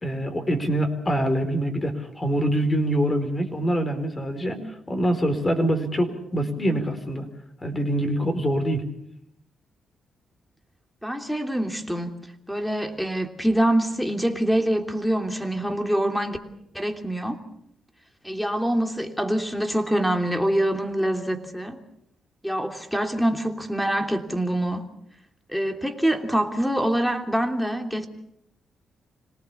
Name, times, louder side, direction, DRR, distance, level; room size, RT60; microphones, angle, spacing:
voice 1, 0.0-4.6 4.9-7.3 7.6-8.8, right 1 dB, 25° left, 7 dB, 4.5 m, -24 dB
voice 2, 11.0-12.1 12.5-16.4 16.7-17.4 18.2-21.8 22.4-24.8 25.5-28.1, right 1 dB, ahead, 5 dB, 3.0 m, -25 dB
26.5 x 18.5 x 7.1 m, 0.75 s
cardioid pair, 70°, 0 cm